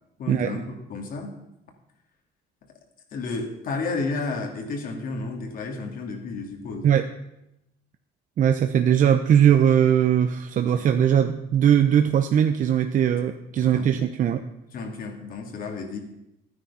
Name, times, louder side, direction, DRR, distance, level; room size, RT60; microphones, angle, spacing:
voice 1, 0.2-1.3 3.1-6.9 10.7-10.8 13.6-13.9 14.7-16.0, left 3 dB, 55° left, 3 dB, 2.5 m, -32 dB
voice 2, 8.4-14.4, right 9 dB, 50° right, 7 dB, 0.7 m, -20 dB
12.5 x 9.6 x 5.6 m, 0.87 s
cardioid pair, 110°, 17 cm